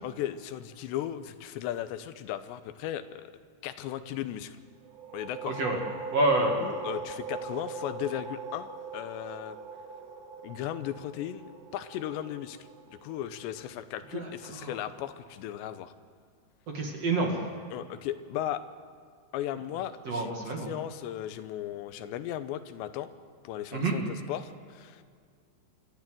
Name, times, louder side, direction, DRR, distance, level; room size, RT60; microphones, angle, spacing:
voice 1, 0.0-3.3 3.6-4.6 5.1-5.6 6.6-9.6 10.4-12.6 12.9-15.9 17.7-18.6 19.3-20.3 20.6-23.1 23.4-25.0, left 11 dB, 90° left, 11 dB, 3.1 m, -36 dB
sound 1, 4.8-14.2, right 5 dB, 70° right, 2.6 m, -41 dB
voice 2, 5.4-5.8 6.1-6.5 14.1-14.7 16.7-17.4 20.1-20.8 23.7-23.9, right 2 dB, 45° right, 1 dB, 2.7 m, -28 dB
26.5 x 13.0 x 7.6 m, 2.2 s
omnidirectional pair, 4.9 m